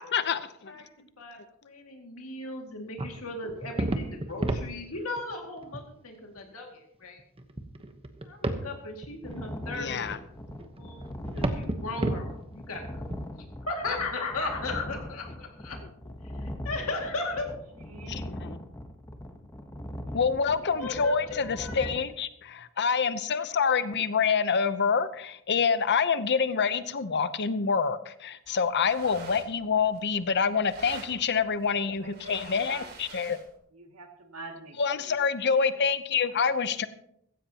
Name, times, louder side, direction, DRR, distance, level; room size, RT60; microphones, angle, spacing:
voice 1, 0.1-0.7 8.4-8.6 9.8-10.2 16.3-16.4 18.1-18.6 20.1-33.4 34.8-36.9, left 6 dB, 55° left, 13 dB, 0.8 m, -27 dB
voice 2, 0.7-7.2 8.2-10.2 10.8-11.0 11.3-13.0 13.7-15.8 16.4-17.5 20.8-22.0, left 3 dB, 75° left, 2 dB, 2.3 m, -36 dB
sound 1, 3.0-5.3 5.6-5.8 6.4-6.5 7.2-8.7 9.0-13.2, right 1 dB, 25° right, 1.1 m, -32 dB
sound 2, 9.2-22.0, left 1 dB, 15° left, 1.1 m, -40 dB
voice 3, 17.8-18.3 20.1-20.8 31.7-33.3 33.7-35.2 36.5-36.8, right 3 dB, 75° right, 3 dB, 2.3 m, -48 dB
sound 3, 28.5-33.6, right 3 dB, 50° right, 2.7 m, -48 dB
15.5 x 15.5 x 2.9 m, 0.73 s
head